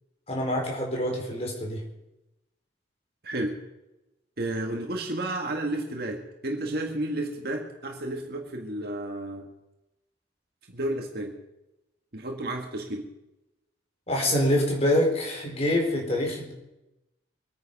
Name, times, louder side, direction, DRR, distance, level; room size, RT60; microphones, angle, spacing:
voice 1, 0.3-1.8 14.1-16.5, left 1 dB, 35° left, 0 dB, 4.4 m, -25 dB
voice 2, 3.2-3.6 4.4-9.5 10.7-11.4 12.1-13.1, right 1 dB, 55° right, 2 dB, 1.9 m, -32 dB
24.0 x 9.6 x 5.5 m, 0.95 s
head